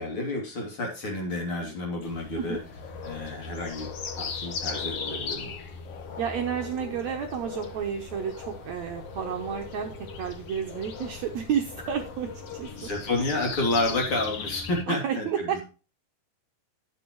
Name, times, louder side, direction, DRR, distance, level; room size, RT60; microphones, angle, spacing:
voice 1, 0.0-2.6 3.0-3.9 4.2-5.5 12.8-15.6, left 2 dB, 35° left, 0 dB, 3.4 m, -30 dB
sound 1, 2.0-14.8, left 5 dB, 55° left, 1.7 m, -38 dB
voice 2, 6.2-9.9 10.2-12.9 14.9-15.6, right 8 dB, 90° right, 3 dB, 1.5 m, -31 dB
12.5 x 7.8 x 3.1 m, 0.34 s
omnidirectional pair, 4.6 m